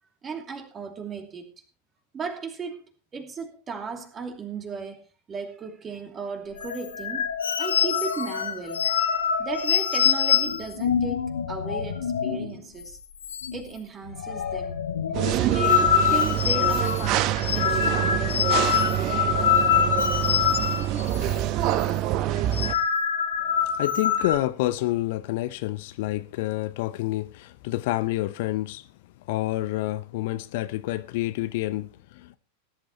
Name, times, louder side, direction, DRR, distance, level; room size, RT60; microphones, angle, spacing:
voice 1, 0.2-1.5 2.1-2.8 3.1-7.3 7.6-13.0 13.5-14.8 15.2-19.2, right 5 dB, 20° right, 2.7 m, -36 dB
sound 1, 6.6-12.5 12.8-12.9 13.2-13.8 14.1-21.4 21.7-21.9 22.4-24.3, left 8 dB, 65° left, 1.5 m, -25 dB
sound 2, 15.1-22.7, right 12 dB, 40° right, 0.9 m, -26 dB
voice 2, 23.7-28.9 29.3-32.4, left 16 dB, 50° left, 0.7 m, -28 dB
19.5 x 11.5 x 3.0 m
figure-of-eight pair, 90°, 0 cm